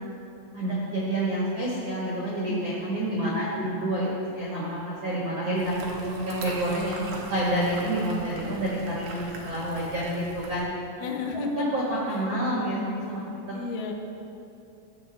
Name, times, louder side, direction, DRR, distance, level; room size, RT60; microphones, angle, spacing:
voice 1, 0.5-10.7 11.5-12.8 13.1-13.2 13.5-13.6, right 1 dB, 65° right, -7 dB, 1.5 m, -28 dB
voice 2, 3.0-3.8 11.0-11.7 13.5-13.9, left 4 dB, 85° left, 3 dB, 3.3 m, -33 dB
sound 1, 5.6-10.6, right 3 dB, 85° right, 1.7 m, -41 dB
14.0 x 7.5 x 3.5 m, 2.7 s
omnidirectional pair, 5.3 m